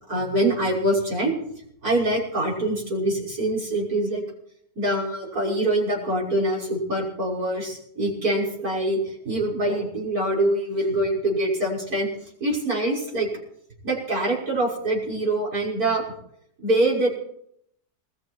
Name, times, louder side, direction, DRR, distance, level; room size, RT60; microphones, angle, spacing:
voice 1, 0.1-1.3 1.8-4.2 4.8-12.1 12.4-13.3 13.8-16.0 16.6-17.1, right 1 dB, 60° right, -3 dB, 6.6 m, -24 dB
21.0 x 14.0 x 4.6 m, 0.71 s
omnidirectional pair, 1.8 m